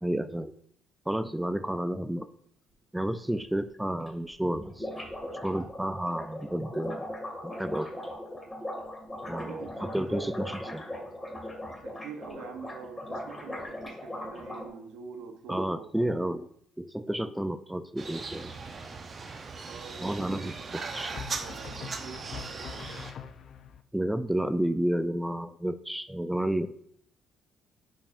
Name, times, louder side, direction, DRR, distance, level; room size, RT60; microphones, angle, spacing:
voice 1, 0.0-0.5 1.1-2.3 2.9-4.9 5.4-7.1 7.4-7.9 9.3-10.8 15.5-16.5 16.8-18.5 20.0-21.1 23.9-26.8, right 1 dB, 5° right, 12 dB, 0.4 m, -31 dB
sound 1, 3.4-3.5 3.7-3.8 4.1-4.2 4.4-14.7, left 1 dB, 15° left, 2.2 m, -39 dB
voice 2, 9.3-10.5 11.8-16.4 19.7-23.1, right 5 dB, 75° right, 5 dB, 1.0 m, -45 dB
sound 2, 18.0-23.1, right 4 dB, 40° right, 0.9 m, -39 dB
sound 3, 18.5-19.0 21.1-23.8, left 7 dB, 55° left, 0.6 m, -44 dB
8.6 x 6.4 x 2.6 m, 0.67 s
hypercardioid pair, 55°, 0 cm